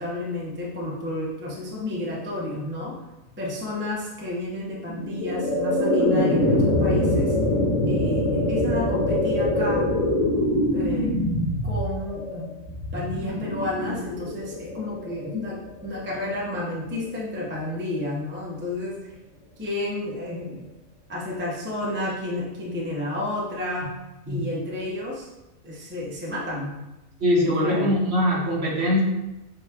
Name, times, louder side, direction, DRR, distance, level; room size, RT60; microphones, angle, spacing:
voice 1, 0.0-3.0 3.4-7.3 7.9-9.9 10.7-11.2 11.6-19.1 19.6-20.7 21.1-23.9 24.3-25.3 25.6-26.7 27.3-27.9, left 1 dB, 10° right, -4 dB, 0.5 m, -31 dB
sound 1, 4.9-16.0, left 1 dB, 40° left, 0.4 m, -24 dB
voice 2, 27.2-29.0, left 1 dB, 50° right, -4 dB, 1.3 m, -22 dB
7.2 x 2.8 x 2.3 m, 0.99 s
omnidirectional pair, 1.4 m